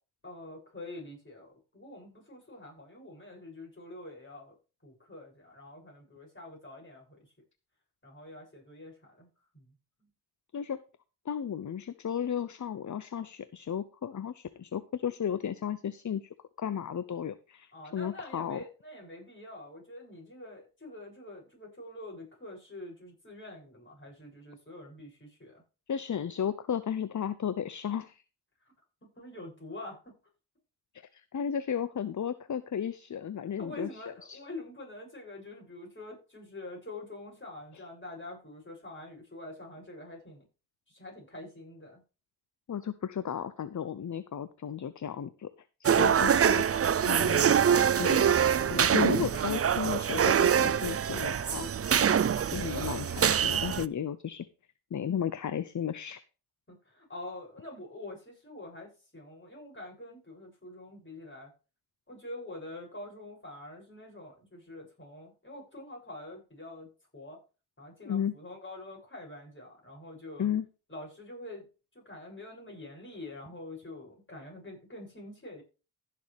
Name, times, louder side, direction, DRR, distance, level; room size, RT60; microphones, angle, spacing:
voice 1, 0.2-4.5 4.8-7.2 8.0-9.3 9.5-9.7 10.0-10.1 17.7-25.6 29.0-30.1 33.6-40.4 40.9-42.0 52.7-53.0 56.7-61.5 62.1-67.4 67.8-70.5 70.9-71.7 71.9-75.6, left 2 dB, 30° left, -1 dB, 7.2 m, -46 dB
voice 2, 11.3-18.6 25.9-28.2 30.9-34.4 37.7-37.8 42.7-45.5 45.8-46.7 47.1-48.3 48.6-51.9 52.5-54.5 54.9-56.2 68.0-68.3 70.4-70.7, left 8 dB, 45° left, 14 dB, 0.7 m, -34 dB
sound 1, 45.8-53.8, right 8 dB, 35° right, 0.5 m, -25 dB
15.5 x 6.7 x 3.5 m, 0.33 s
cardioid pair, 60°, 41 cm